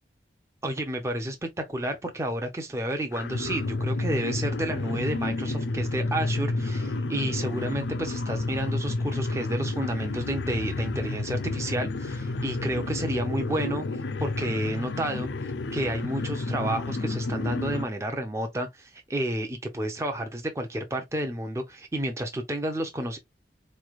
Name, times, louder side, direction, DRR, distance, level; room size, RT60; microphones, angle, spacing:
voice 1, 0.6-13.9 14.2-15.3 15.7-23.2, right 1 dB, 15° right, 0.5 m, -31 dB
sound 1, 3.1-17.9, left 2 dB, 85° left, 0.5 m, -30 dB
4.2 x 3.1 x 2.3 m
head